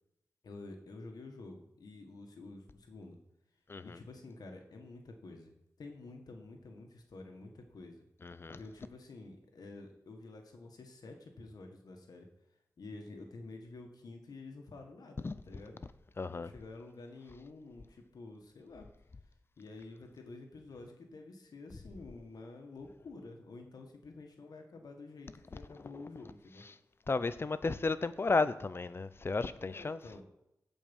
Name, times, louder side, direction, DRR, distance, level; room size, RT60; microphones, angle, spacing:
voice 1, 0.4-3.2 3.8-8.1 8.5-12.3 12.8-15.8 16.3-18.9 19.6-26.7 29.7-30.2, left 3 dB, 75° left, 1.7 m, -49 dB
voice 2, 3.7-4.0 8.2-8.6 15.2-15.4 16.2-16.5 27.1-30.0, left 3 dB, 35° left, 0.6 m, -33 dB
15.5 x 5.2 x 5.5 m
wide cardioid pair, 95°, 7 cm